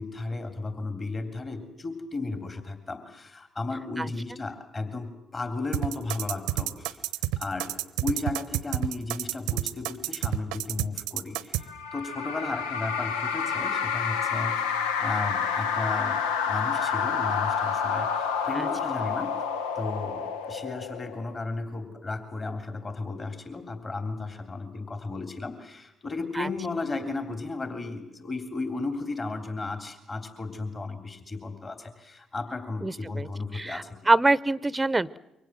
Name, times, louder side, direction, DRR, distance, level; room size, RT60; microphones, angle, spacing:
voice 1, 0.0-7.0 7.4-14.6 15.0-19.3 19.7-34.0, left 3 dB, 35° left, 8 dB, 3.3 m, -34 dB
sound 1, 5.7-11.6, right 15 dB, 70° right, 0.9 m, -29 dB
sound 2, 11.7-21.4, left 6 dB, 80° left, 0.9 m, -29 dB
voice 2, 32.8-33.3 33.5-35.2, right 2 dB, 20° right, 19 dB, 0.9 m, -25 dB
28.0 x 24.0 x 7.5 m, 0.91 s
figure-of-eight pair, 45°, 0 cm